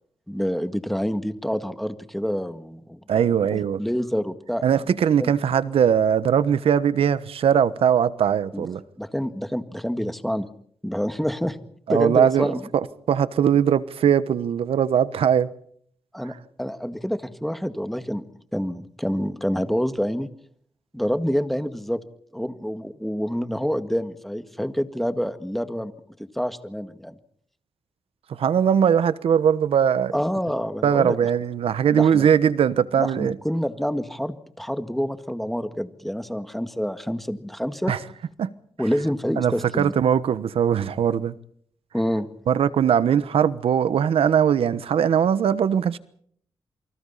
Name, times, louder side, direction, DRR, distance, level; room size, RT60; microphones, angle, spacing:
voice 1, 0.3-3.0 3.5-4.6 5.2-5.3 8.5-8.7 9.0-10.5 10.8-11.6 11.9-12.6 16.1-18.2 18.5-20.3 20.9-22.0 22.3-25.9 26.4-27.2 30.1-31.2 31.9-32.3 33.0-37.9 38.8-39.9 41.9-42.3, equal, ahead, 1.8 m, -27 dB
voice 2, 3.1-3.8 4.6-8.8 11.9-15.5 28.3-30.1 30.8-33.4 37.9-38.0 38.4-38.5 39.4-41.3 42.5-46.0, right 8 dB, 85° right, 1.2 m, -20 dB
28.5 x 24.5 x 4.2 m
cardioid pair, 95°, 9 cm